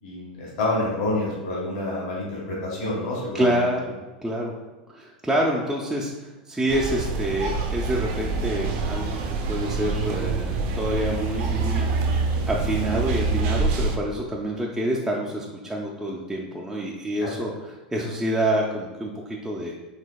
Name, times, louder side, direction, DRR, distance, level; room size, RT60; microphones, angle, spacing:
voice 1, 0.0-3.6 17.2-17.3, left 2 dB, 60° left, -5 dB, 1.4 m, -28 dB
voice 2, 3.3-4.5 4.9-9.2 9.5-11.9 12.5-19.7, right 1 dB, 5° right, -4 dB, 0.5 m, -27 dB
sound 1, 6.7-14.0, right 4 dB, 55° right, 0.6 m, -26 dB
4.9 x 3.3 x 2.3 m, 1.2 s
hypercardioid pair, 95°, 5 cm